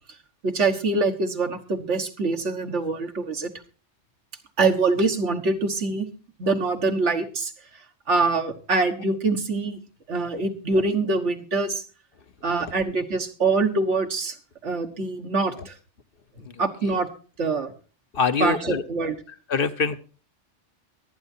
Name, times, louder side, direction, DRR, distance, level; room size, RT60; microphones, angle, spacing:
voice 1, 0.4-3.5 4.6-6.1 6.4-7.5 8.1-9.8 10.1-11.8 12.4-14.4 14.6-15.7 16.6-17.1 17.4-17.7 18.4-19.2, right 3 dB, 85° right, 5 dB, 1.8 m, -24 dB
voice 2, 18.1-18.8 19.5-20.0, left 5 dB, 55° left, 10 dB, 1.0 m, -24 dB
23.0 x 9.4 x 2.7 m, 0.37 s
omnidirectional pair, 1.2 m